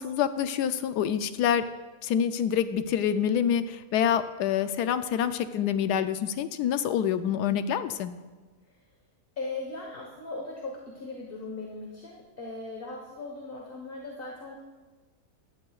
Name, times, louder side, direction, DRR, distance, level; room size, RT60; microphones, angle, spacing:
voice 1, 0.0-1.7 2.0-8.1, left 9 dB, 80° left, 11 dB, 1.2 m, -27 dB
voice 2, 9.4-14.6, left 3 dB, 35° left, -1 dB, 1.3 m, -38 dB
15.5 x 11.5 x 2.4 m, 1.3 s
omnidirectional pair, 1.7 m